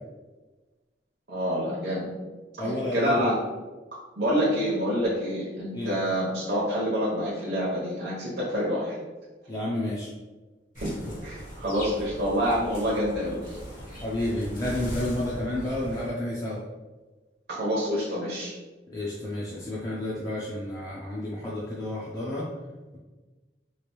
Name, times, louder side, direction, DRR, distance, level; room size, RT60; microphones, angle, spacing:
voice 1, 1.3-2.0 2.6-3.3 4.2-9.0 10.8-10.9 11.2-13.6 17.6-18.5, equal, 60° right, -7 dB, 0.8 m, -27 dB
voice 2, 2.6-3.2 5.7-5.9 9.5-10.1 14.0-16.6 18.9-22.4, left 1 dB, 20° left, -6 dB, 0.4 m, -30 dB
sound 1, 10.7-16.1, equal, 45° left, 0.9 m, -39 dB
3.1 x 2.5 x 3.0 m, 1.2 s
head